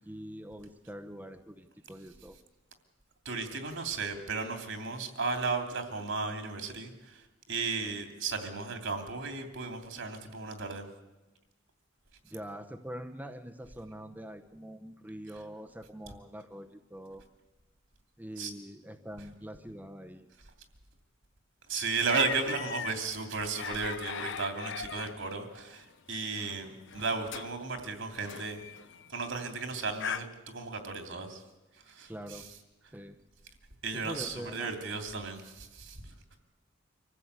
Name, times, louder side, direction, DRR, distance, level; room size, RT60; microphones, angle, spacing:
voice 1, 0.0-2.4 12.2-17.2 18.2-20.3 32.1-32.5 32.9-33.2 33.9-34.9, equal, 10° right, 6 dB, 0.9 m, -44 dB
voice 2, 3.2-10.9 18.4-18.5 21.7-28.6 29.1-31.4 31.9-32.4 33.8-36.1, right 4 dB, 65° right, 5 dB, 2.8 m, -35 dB
sound 1, 22.1-30.2, left 7 dB, 65° left, 0.8 m, -40 dB
25.0 x 15.0 x 8.2 m, 1.1 s
head